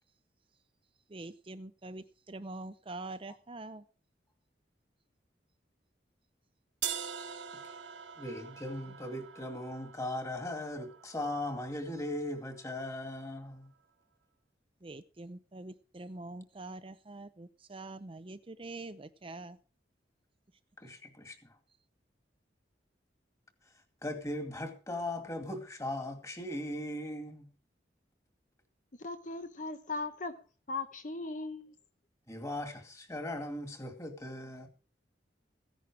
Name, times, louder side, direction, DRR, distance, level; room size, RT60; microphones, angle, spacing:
voice 1, 1.1-3.8 14.8-19.6, right 2 dB, 30° right, 0.6 m, -45 dB
sound 1, 6.8-12.8, right 9 dB, 85° right, 1.2 m, -44 dB
voice 2, 8.2-13.7 20.8-21.6 24.0-27.5 32.3-34.7, left 1 dB, 20° left, 2.4 m, -38 dB
voice 3, 29.0-30.4 30.7-31.8, left 3 dB, 45° left, 1.2 m, -38 dB
16.0 x 10.5 x 4.9 m
head